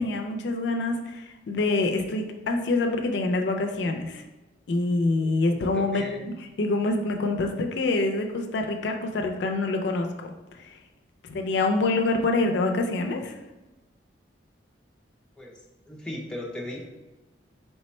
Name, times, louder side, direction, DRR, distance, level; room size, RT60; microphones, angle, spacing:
voice 1, 0.0-4.2 4.7-10.8 11.2-13.4, left 2 dB, 65° left, 4 dB, 0.4 m, -26 dB
voice 2, 5.2-6.2 15.4-15.6 15.9-16.8, left 1 dB, 5° left, -3 dB, 0.4 m, -37 dB
3.3 x 2.1 x 4.2 m, 1.1 s
head